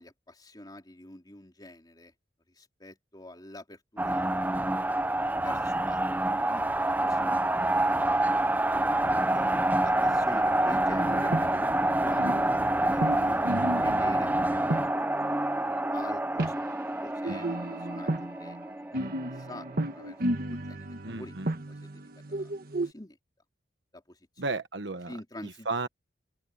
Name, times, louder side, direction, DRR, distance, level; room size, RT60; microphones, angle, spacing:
voice 1, 0.0-2.1 2.5-4.2 4.8-6.0 6.4-8.3 8.8-12.3 12.9-16.7 17.0-17.6 17.9-18.1 18.4-18.6 18.9-19.1 19.3-19.7 19.9-20.2 20.5-21.4 21.7-22.0 22.3-22.5 22.8-23.2 23.9-24.5 25.1-25.7, left 1 dB, 20° left, 3.3 m, -47 dB
sound 1, 4.0-19.8, right 1 dB, 10° right, 0.7 m, -27 dB
sound 2, 11.0-11.8 12.1-16.6 17.2-22.9, right 1 dB, 55° right, 1.4 m, -34 dB
voice 2, 21.0-21.5 24.4-25.1 25.4-25.9, right 3 dB, 70° right, 1.3 m, -33 dB
open air
head